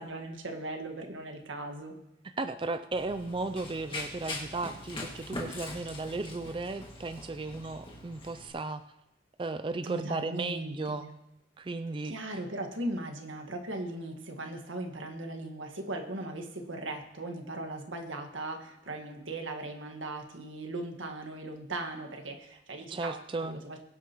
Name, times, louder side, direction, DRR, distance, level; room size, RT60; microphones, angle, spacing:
voice 1, 0.0-1.9 9.8-11.1 12.0-23.8, right 2 dB, 85° right, 3 dB, 1.6 m, -38 dB
voice 2, 2.4-8.8 9.4-11.1 11.6-12.1 22.9-23.6, right 3 dB, 25° right, 8 dB, 0.3 m, -35 dB
Run, 2.9-8.5, left 2 dB, 25° left, 2.0 m, -42 dB
22.5 x 8.4 x 3.0 m, 0.88 s
head